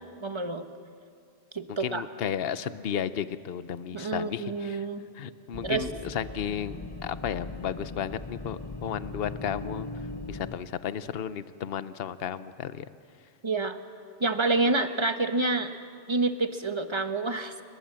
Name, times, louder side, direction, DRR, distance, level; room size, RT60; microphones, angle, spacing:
voice 1, 0.2-0.7 1.5-2.0 3.9-5.0 5.6-5.9 13.4-13.8 14.2-15.7 16.1-17.6, right 3 dB, 25° right, 8 dB, 1.2 m, -28 dB
voice 2, 1.7-4.9 5.1-9.9 10.3-12.9, left 8 dB, 65° left, 13 dB, 1.0 m, -33 dB
sound 1, 5.5-10.6, left 2 dB, 20° left, 1.1 m, -39 dB
29.5 x 21.5 x 7.6 m, 2.3 s
omnidirectional pair, 1.1 m